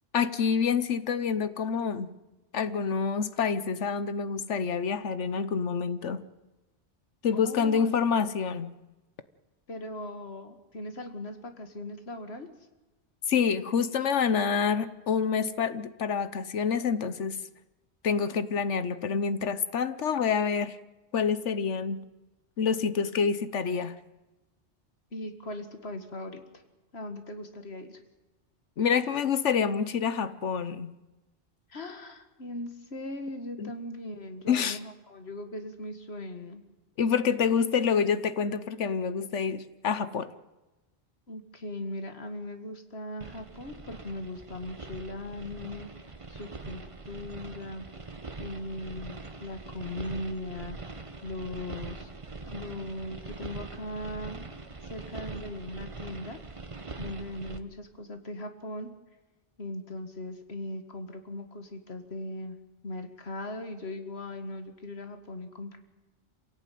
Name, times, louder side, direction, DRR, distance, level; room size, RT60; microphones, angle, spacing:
voice 1, 0.1-2.2 2.5-6.3 7.2-8.7 13.3-17.4 18.0-20.8 21.1-22.1 22.6-24.0 28.8-30.9 33.6-33.7 34.5-34.8 37.0-40.3, left 6 dB, 85° left, 14 dB, 1.3 m, -27 dB
voice 2, 7.3-8.0 9.7-12.5 25.1-26.4 26.9-28.0 31.7-36.6 41.3-45.9 46.3-47.9 48.4-50.8 51.2-52.1 52.4-54.5 54.8-56.4 57.0-58.9 59.6-62.6 62.8-65.8, left 1 dB, 60° left, 7 dB, 2.3 m, -39 dB
sound 1, 43.2-57.6, right 3 dB, 30° right, 1.2 m, -42 dB
27.0 x 17.0 x 9.3 m, 1.1 s
omnidirectional pair, 1.2 m